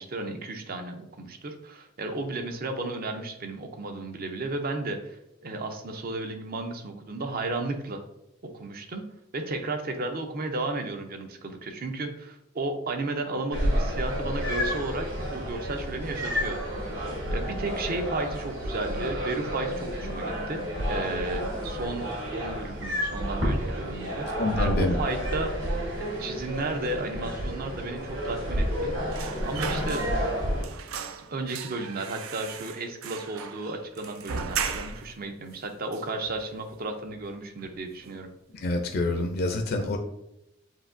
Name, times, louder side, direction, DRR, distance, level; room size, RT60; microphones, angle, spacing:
voice 1, 0.0-5.2 5.4-8.0 8.4-9.0 9.3-16.6 17.3-20.6 20.9-25.5 26.2-30.0 31.3-38.3, right 2 dB, 45° right, 6 dB, 0.6 m, -33 dB
sound 1, 13.5-30.6, equal, 65° right, 1.7 m, -30 dB
voice 2, 24.3-24.9 38.5-40.0, left 2 dB, 50° left, 3 dB, 0.4 m, -27 dB
sound 2, 29.1-30.4 30.6-35.2 35.5-35.6 35.9-36.7 37.1-37.3 37.6-38.3 38.6-38.7, right 6 dB, 85° right, 0.4 m, -37 dB
7.5 x 2.7 x 2.5 m, 0.86 s
head